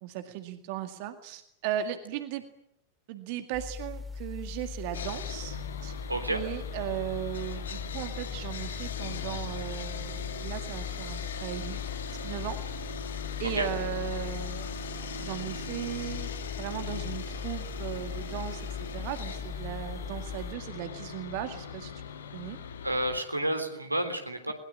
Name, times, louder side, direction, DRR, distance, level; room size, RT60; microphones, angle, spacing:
voice 1, 0.0-2.4 3.1-5.6 5.8-5.9 6.3-11.8 12.2-12.6 13.4-14.8 15.2-21.9 22.3-22.6, right 12 dB, 45° right, 8 dB, 2.1 m, -37 dB
sound 1, 3.5-20.6, left 4 dB, ahead, 3.2 m, -40 dB
Sawing, 4.9-23.2, left 8 dB, 65° left, 1.9 m, -39 dB
voice 2, 6.1-6.4 13.5-13.7 22.8-24.5, right 1 dB, 85° right, 5 dB, 3.5 m, -30 dB
21.5 x 21.0 x 8.8 m, 0.73 s
figure-of-eight pair, 90°, 0 cm